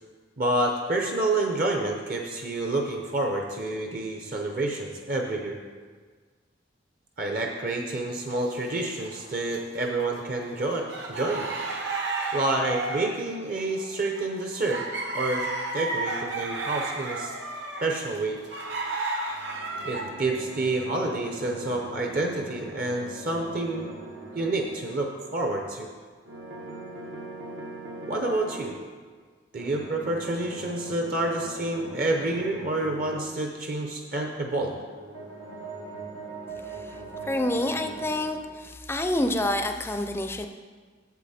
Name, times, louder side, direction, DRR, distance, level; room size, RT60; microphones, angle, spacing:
voice 1, 0.4-5.6 7.2-11.5 12.3-14.8 15.1-15.5 15.7-17.3 17.8-18.4 19.8-23.9 24.3-25.9 28.1-28.7 29.5-34.7, right 2 dB, 50° right, 2 dB, 0.7 m, -28 dB
sound 1, 8.3-9.6 10.0-20.0, right 3 dB, 65° right, 1.0 m, -33 dB
sound 2, 19.3-25.4 26.2-28.8 29.5-33.3 34.7-38.4, right 2 dB, 90° right, 1.5 m, -41 dB
voice 2, 37.2-40.5, left 1 dB, 10° left, 6 dB, 0.4 m, -28 dB
8.4 x 7.5 x 4.2 m, 1.5 s
head